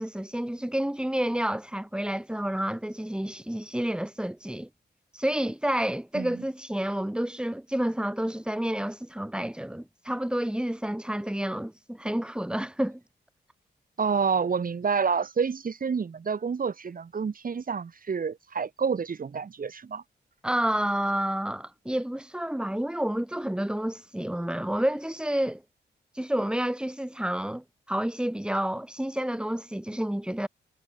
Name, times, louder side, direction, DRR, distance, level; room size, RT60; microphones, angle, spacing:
voice 1, 0.0-4.7 5.1-13.0 20.4-25.6 26.1-30.5, right 1 dB, 5° right, 6.0 m, -29 dB
voice 2, 14.0-20.0, right 6 dB, 55° right, 7.5 m, -28 dB
cardioid pair, 90°, 18 cm